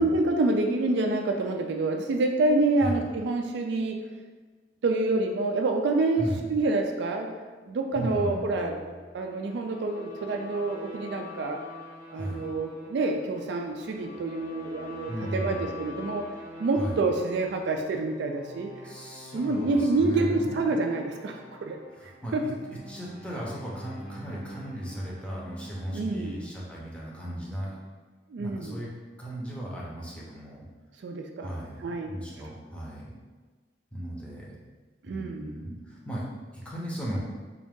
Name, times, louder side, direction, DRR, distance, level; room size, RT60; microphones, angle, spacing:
voice 1, 0.0-4.0 4.8-8.8 9.1-11.6 12.1-16.2 16.6-18.9 19.3-21.8 22.0-22.4 25.9-26.4 28.3-28.8 31.0-31.5 31.8-32.1 32.4-32.5 35.1-35.6, right 2 dB, 65° right, 3 dB, 0.3 m, -27 dB
sound 1, 7.9-26.7, left 1 dB, 45° left, 0.8 m, -45 dB
voice 2, 7.9-8.4 12.1-12.4 15.1-15.7 16.8-17.0 18.8-20.6 21.9-22.5 22.9-27.7 28.4-28.9 29.2-30.6 31.4-33.1 33.9-34.5 35.0-36.2 36.6-37.2, equal, 5° left, -5 dB, 0.7 m, -36 dB
3.8 x 2.6 x 3.5 m, 1.3 s
head